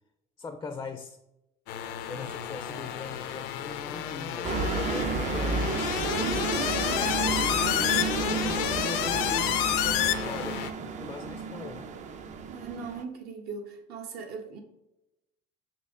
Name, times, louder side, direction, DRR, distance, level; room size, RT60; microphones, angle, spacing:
voice 1, 0.4-1.2 2.1-5.8 6.8-7.4 7.7-11.9, left 4 dB, 15° left, 7 dB, 0.4 m, -40 dB
sound 1, 1.7-10.7, left 11 dB, 90° left, 0.5 m, -30 dB
sound 2, 4.4-13.0, right 4 dB, 40° right, 0.5 m, -32 dB
voice 2, 6.1-7.2 12.5-14.6, right 4 dB, 65° right, 4 dB, 1.1 m, -40 dB
6.2 x 4.3 x 3.6 m, 0.91 s
cardioid pair, 130°, 18 cm